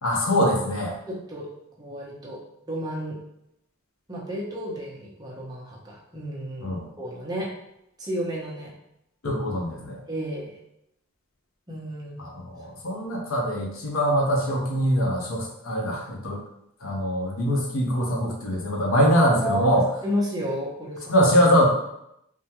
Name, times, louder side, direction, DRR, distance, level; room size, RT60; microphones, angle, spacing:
voice 1, 0.0-0.9 6.6-6.9 9.2-10.0 12.2-16.4 16.8-19.8 21.1-21.7, equal, 80° left, -1 dB, 0.8 m, -23 dB
voice 2, 1.1-1.5 1.8-2.4 2.7-3.2 4.1-7.5 8.0-8.7 10.1-10.5 11.7-12.3 19.3-21.0, equal, 20° right, -3 dB, 0.7 m, -32 dB
3.6 x 2.2 x 2.9 m, 0.80 s
head